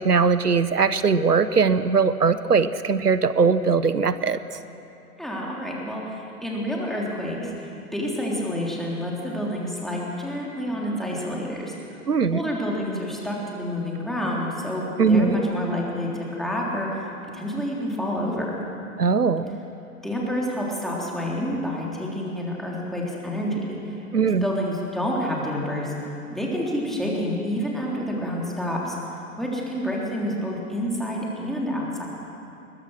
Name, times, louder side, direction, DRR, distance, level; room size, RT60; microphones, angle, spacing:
voice 1, 0.0-4.6 12.1-12.4 15.0-15.4 19.0-19.6 24.1-24.5, right 5 dB, 90° right, 14 dB, 0.9 m, -20 dB
voice 2, 5.2-12.0 12.3-18.6 20.0-32.1, equal, ahead, -4 dB, 3.4 m, -28 dB
21.5 x 21.0 x 6.3 m, 2.9 s
figure-of-eight pair, 115°, 46 cm